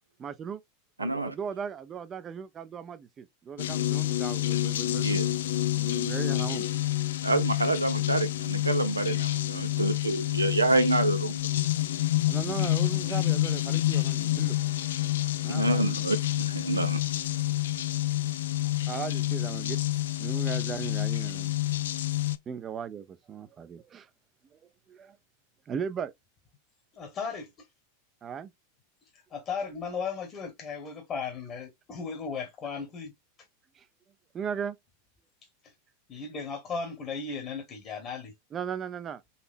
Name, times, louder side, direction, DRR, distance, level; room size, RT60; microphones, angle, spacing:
voice 1, 0.2-0.6 1.0-5.2 5.8-6.7 12.3-14.6 15.4-16.0 18.9-19.8 20.2-21.6 22.5-24.1 24.5-24.6 24.9-25.2 25.7-26.1 28.2-28.5 33.7-33.9 34.3-34.8 38.5-39.2, right 7 dB, 30° right, 0.5 m, -37 dB
voice 2, 1.0-1.3 5.0-5.3 7.2-11.4 15.5-17.0, right 2 dB, 90° right, 0.4 m, -27 dB
sound 1, 3.6-22.4, left 15 dB, 70° left, 0.3 m, -28 dB
voice 3, 26.9-27.7 29.3-33.1 36.1-38.3, left 5 dB, 35° left, 1.1 m, -36 dB
4.1 x 2.9 x 2.5 m
figure-of-eight pair, 90°, 0 cm